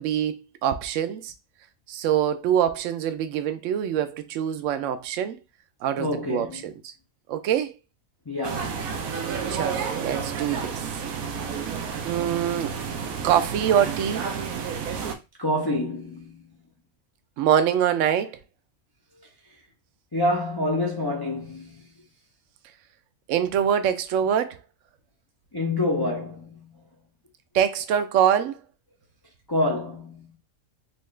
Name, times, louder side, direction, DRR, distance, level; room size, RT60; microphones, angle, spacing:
voice 1, 0.0-1.3 1.9-5.4 5.8-6.9 7.3-7.8 9.5-10.9 12.0-12.7 13.2-14.3 17.4-18.4 23.3-24.6 27.5-28.6, right 9 dB, 70° right, 0.9 m, -24 dB
voice 2, 6.0-6.7 8.3-8.8 15.4-16.5 20.1-21.8 25.5-26.7 29.5-30.3, left 1 dB, 35° left, 0.3 m, -27 dB
sound 1, 8.4-15.2, right 6 dB, 85° right, 1.1 m, -31 dB
4.2 x 2.3 x 3.2 m
omnidirectional pair, 1.5 m